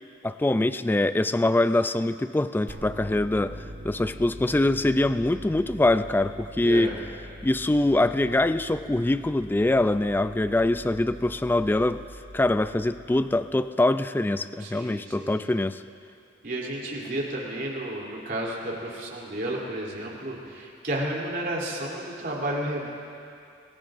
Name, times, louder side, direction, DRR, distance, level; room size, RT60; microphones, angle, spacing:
voice 1, 0.2-6.9 7.4-12.0 12.3-15.8, left 2 dB, 10° left, 12 dB, 0.3 m, -24 dB
sound 1, 2.7-13.7, equal, 90° right, 1.6 m, -43 dB
voice 2, 6.6-6.9 14.6-15.4 16.4-22.9, right 1 dB, 50° right, -3 dB, 3.1 m, -32 dB
28.0 x 20.5 x 2.5 m, 2.5 s
head